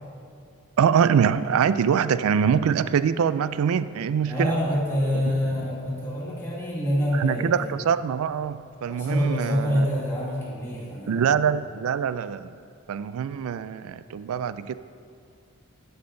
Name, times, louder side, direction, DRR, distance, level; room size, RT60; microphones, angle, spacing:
voice 1, 0.8-4.5 7.1-9.9 11.1-12.5 12.9-14.7, right 7 dB, 75° right, 14 dB, 0.3 m, -24 dB
voice 2, 4.3-7.7 8.9-11.4, equal, 10° left, -7 dB, 2.1 m, -26 dB
13.5 x 5.6 x 3.8 m, 2.5 s
head